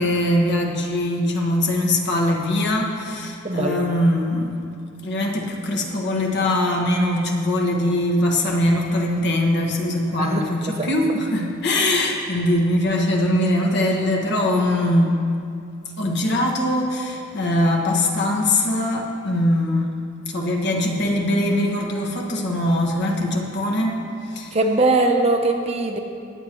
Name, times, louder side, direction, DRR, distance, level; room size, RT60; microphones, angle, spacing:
voice 1, 0.0-4.5 5.0-15.2 16.0-19.8 20.3-24.0 24.3-24.6, left 1 dB, 55° left, 0 dB, 1.4 m, -21 dB
voice 2, 3.4-3.9 10.2-10.5 10.7-10.9 24.5-26.0, right 2 dB, 30° right, 4 dB, 0.8 m, -21 dB
20.0 x 8.9 x 3.1 m, 2.5 s
head